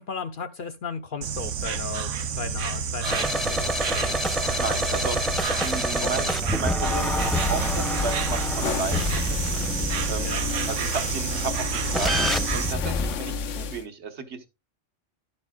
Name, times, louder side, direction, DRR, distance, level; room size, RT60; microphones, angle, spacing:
voice 1, 0.0-4.2 6.0-6.3 10.2-10.4, left 5 dB, 55° left, 0.7 m, -36 dB
Insect, 1.2-12.7, right 7 dB, 85° right, 1.1 m, -29 dB
sound 1, 3.0-10.5 11.9-13.1, left 1 dB, ahead, 0.7 m, -28 dB
voice 2, 4.6-5.2 5.6-6.3 6.5-9.6 10.1-12.2 12.5-14.5, right 4 dB, 65° right, 1.3 m, -33 dB
sound 2, 6.8-13.8, left 5 dB, 85° left, 1.1 m, -31 dB
11.0 x 8.7 x 2.3 m
omnidirectional pair, 1.2 m